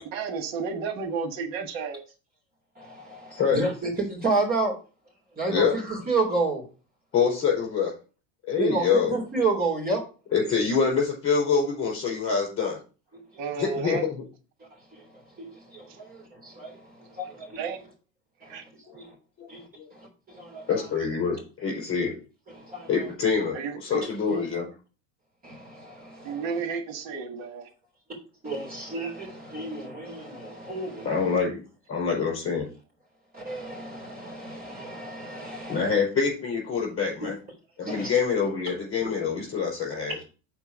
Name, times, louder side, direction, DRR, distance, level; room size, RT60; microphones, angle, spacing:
voice 1, 0.0-2.0 13.4-14.0 15.9-16.0 17.6-17.8 18.5-18.6 23.5-24.0 24.3-24.6 26.2-27.7, right 5 dB, 85° right, 1.7 m, -32 dB
voice 2, 2.8-4.8 5.4-6.6 8.6-10.0 13.1-13.2 14.6-17.6 18.4-18.6 18.9-19.2 19.5-20.9 22.5-23.1 25.4-26.5 28.4-31.4 33.3-36.0 37.2-37.3 37.9-38.1 40.1-40.2, right 3 dB, 25° right, 3.4 m, -31 dB
voice 3, 3.3-3.6 5.5-5.7 7.1-7.9 8.5-9.2 10.3-12.8 13.6-14.0 19.4-19.5 19.8-19.9 20.7-22.2 22.9-24.7 31.0-31.6 31.9-32.7 35.7-37.3 37.8-40.2, left 6 dB, 35° left, 5.0 m, -25 dB
7.1 x 4.6 x 6.1 m
cardioid pair, 145°, 38 cm